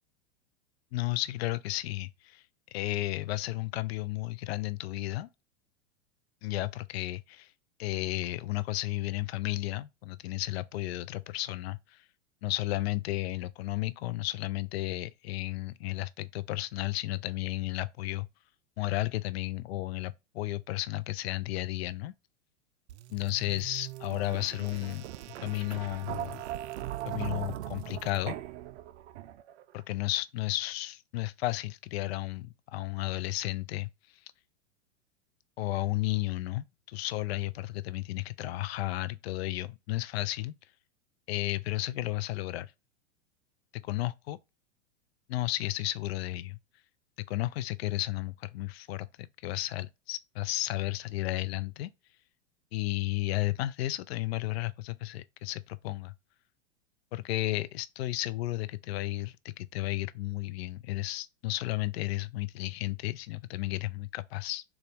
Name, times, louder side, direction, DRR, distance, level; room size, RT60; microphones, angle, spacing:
voice 1, 0.9-2.4 2.7-5.3 6.4-7.5 7.8-12.0 12.4-18.3 18.8-22.1 23.1-25.0 25.4-26.4 27.0-28.4 29.7-33.9 35.6-40.5 41.3-42.7 43.7-44.4 45.3-46.6 47.3-51.9 52.7-56.1 57.1-64.6, left 17 dB, 60° left, 0.5 m, -33 dB
sound 1, 22.9-29.6, right 13 dB, 65° right, 0.5 m, -40 dB
4.0 x 2.4 x 3.4 m
hypercardioid pair, 110°, 37 cm